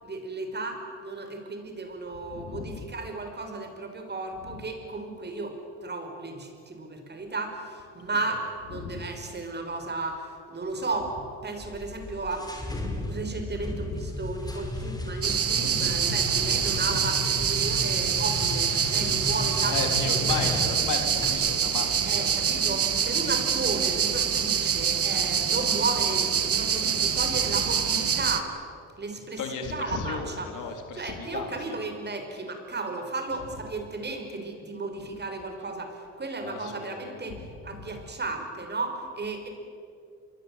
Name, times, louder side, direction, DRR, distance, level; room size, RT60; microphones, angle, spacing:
voice 1, 0.0-8.4 8.7-20.5 22.1-28.5 29.0-30.5 30.9-39.5, right 3 dB, 35° right, 5 dB, 5.8 m, -34 dB
voice 2, 2.3-2.9 8.0-8.1 8.7-9.1 16.7-17.0 17.5-17.7 19.0-22.3 22.5-22.8 27.3-27.4 29.4-31.8 36.4-37.9, left 5 dB, 85° left, 5 dB, 3.7 m, -36 dB
sound 1, 11.6-21.3, left 2 dB, 15° left, 5.7 m, -34 dB
sound 2, 15.2-28.4, right 7 dB, 50° right, 1.9 m, -25 dB
27.0 x 22.5 x 8.9 m, 2.4 s
cardioid pair, 90°, 30 cm